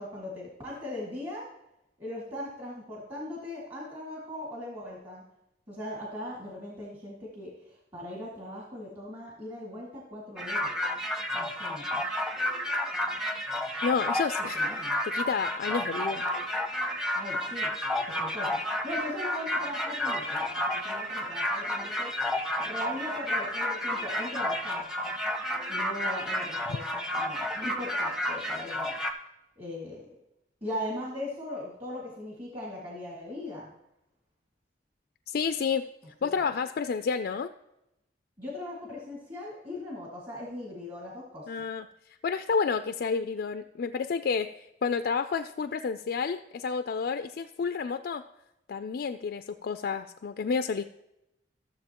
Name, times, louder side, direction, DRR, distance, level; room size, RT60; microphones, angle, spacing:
voice 1, 0.0-1.5 2.0-5.2 5.7-10.7 11.3-12.0 14.6-15.0 17.2-17.7 18.2-18.6 18.8-22.1 22.6-24.8 25.7-28.9 29.6-30.1 30.6-33.7 38.4-41.7, left 1 dB, 30° right, -5 dB, 2.1 m, -39 dB
sound 1, 10.4-29.1, left 1 dB, 5° right, 0.7 m, -31 dB
voice 2, 13.8-16.3 35.3-35.8 36.2-37.5 41.5-41.9 42.2-44.5 44.8-48.2 48.7-50.8, left 5 dB, 55° left, 9 dB, 0.3 m, -30 dB
14.0 x 7.1 x 2.9 m, 0.87 s
head